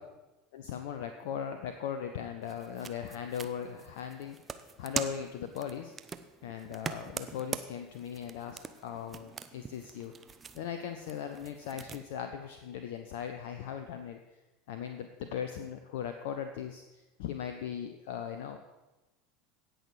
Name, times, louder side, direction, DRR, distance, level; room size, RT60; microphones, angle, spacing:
voice 1, 0.5-5.9 6.4-10.1 10.5-14.2 14.7-18.7, left 8 dB, 60° left, 7 dB, 0.7 m, -39 dB
sound 1, 2.4-12.0, right 5 dB, 20° right, 0.7 m, -43 dB
17.0 x 6.4 x 4.8 m, 1.1 s
figure-of-eight pair, 75°, 0 cm